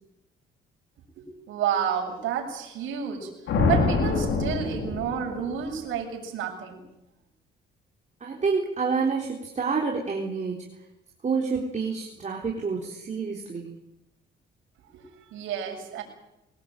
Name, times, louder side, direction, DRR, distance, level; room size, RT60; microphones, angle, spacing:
voice 1, 1.2-3.3 3.7-6.8 14.9-16.0, right 8 dB, 85° right, -1 dB, 7.4 m, -30 dB
sound 1, 3.5-5.7, left 3 dB, 80° left, 5.1 m, -25 dB
voice 2, 8.2-10.7 11.2-13.8, right 5 dB, 35° right, 0 dB, 3.7 m, -28 dB
23.0 x 19.0 x 9.0 m, 0.92 s
cardioid pair, 90°, 20 cm